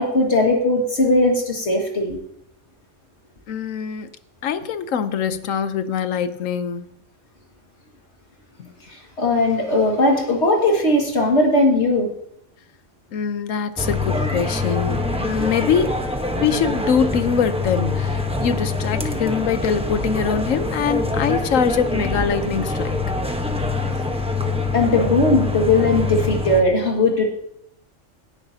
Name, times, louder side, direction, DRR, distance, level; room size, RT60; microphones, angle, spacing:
voice 1, 0.0-2.2 8.9-12.1 23.9-24.0 24.7-27.5, left 2 dB, 60° left, 0 dB, 2.3 m, -19 dB
voice 2, 3.5-4.1 4.4-6.9 8.6-8.7 13.1-16.0 16.3-23.0, left 7 dB, 85° left, 12 dB, 1.2 m, -23 dB
sound 1, 13.8-26.6, left 2 dB, 5° right, 0.9 m, -24 dB
17.5 x 9.8 x 2.8 m, 0.72 s
omnidirectional pair, 1.3 m